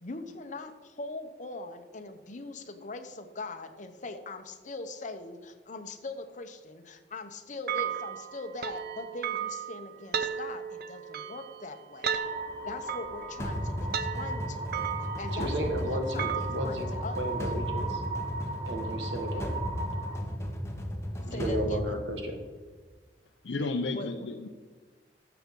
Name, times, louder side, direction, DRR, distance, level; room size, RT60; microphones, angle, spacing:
voice 1, 0.0-12.2 12.6-14.8 15.2-17.2 21.2-22.0 23.9-24.3, left 2 dB, 45° left, 7 dB, 0.9 m, -41 dB
sound 1, 7.7-16.6, right 8 dB, 60° right, 0.6 m, -35 dB
sound 2, 12.1-20.2, right 2 dB, 30° right, 2.5 m, -39 dB
sound 3, 13.4-22.6, equal, 15° left, 1.2 m, -35 dB
voice 2, 15.3-16.9 17.2-18.0 18.7-19.6 21.3-22.4, right 1 dB, 85° right, 4 dB, 1.7 m, -33 dB
voice 3, 23.4-24.5, left 3 dB, 75° left, 4 dB, 0.6 m, -32 dB
13.5 x 6.9 x 3.8 m, 1.4 s
head